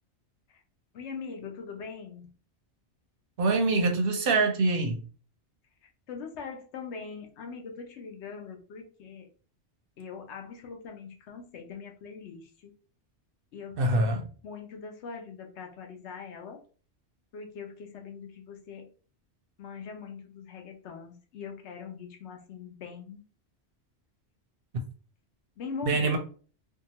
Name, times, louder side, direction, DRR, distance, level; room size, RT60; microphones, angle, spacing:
voice 1, 0.9-2.3 5.8-9.3 10.0-12.7 13.5-14.1 14.4-16.6 17.3-18.9 19.6-23.2 25.6-26.2, left 5 dB, 75° left, 3 dB, 0.9 m, -42 dB
voice 2, 3.4-5.0 13.8-14.3 25.9-26.2, right 3 dB, 65° right, 4 dB, 0.7 m, -24 dB
2.7 x 2.3 x 2.7 m, 0.39 s
omnidirectional pair, 1.2 m